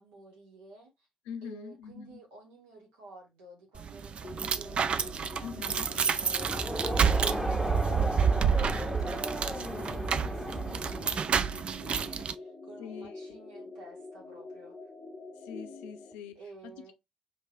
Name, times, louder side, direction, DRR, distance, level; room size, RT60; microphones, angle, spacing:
voice 1, 0.0-1.1 1.4-14.8 16.3-16.9, right 2 dB, 70° right, 1.3 m, -52 dB
voice 2, 1.3-2.2 5.4-5.9 9.5-10.2 12.8-13.4 15.4-16.4 16.8-16.9, left 7 dB, 65° left, 0.5 m, -44 dB
sound 1, 3.7-12.3, right 7 dB, 45° right, 0.4 m, -29 dB
sound 2, 4.2-16.1, left 3 dB, 40° left, 0.7 m, -46 dB
Crowd, 6.3-11.4, equal, 10° right, 1.3 m, -34 dB
5.0 x 3.3 x 2.3 m
figure-of-eight pair, 40°, 3 cm